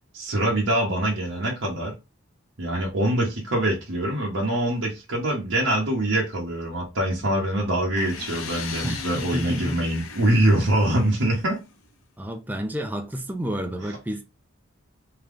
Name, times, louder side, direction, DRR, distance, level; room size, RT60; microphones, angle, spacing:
voice 1, 0.1-1.9 2.6-11.6, right 1 dB, 70° right, 1.1 m, -24 dB
sound 1, 8.0-11.7, left 5 dB, 85° left, 0.7 m, -37 dB
voice 2, 8.8-9.8 12.2-14.2, equal, 10° right, 0.5 m, -30 dB
3.4 x 2.9 x 3.7 m
head